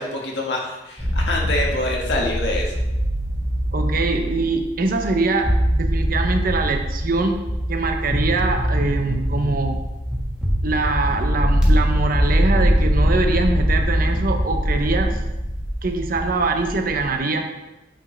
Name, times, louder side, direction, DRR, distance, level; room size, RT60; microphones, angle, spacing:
voice 1, 0.0-2.8, left 1 dB, 75° left, -1 dB, 1.6 m, -25 dB
sound 1, 1.0-17.1, equal, 5° right, 1.5 m, -22 dB
voice 2, 3.7-5.5 5.8-7.4 7.7-9.8 10.6-15.2 15.8-17.5, right 3 dB, 55° right, 4 dB, 0.7 m, -23 dB
8.9 x 4.6 x 3.3 m, 0.98 s
head